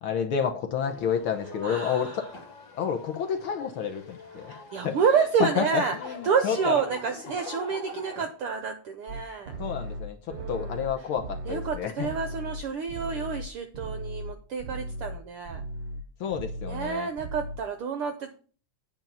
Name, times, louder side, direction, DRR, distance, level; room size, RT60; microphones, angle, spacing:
voice 1, 0.0-2.3 2.8-4.6 4.8-6.8 9.6-12.1 16.2-17.1, left 7 dB, 70° left, 5 dB, 1.2 m, -30 dB
sound 1, 0.8-8.3, left 2 dB, 45° left, 2.0 m, -43 dB
voice 2, 1.6-2.3 4.4-6.0 6.2-9.5 10.3-10.8 11.5-15.6 16.7-18.3, right 6 dB, 70° right, 8 dB, 1.3 m, -29 dB
sound 2, 9.1-14.3 14.6-15.2 15.4-16.0 16.3-16.9 17.2-17.6, right 1 dB, 40° right, 1.0 m, -37 dB
9.3 x 4.9 x 7.0 m, 0.40 s
omnidirectional pair, 3.4 m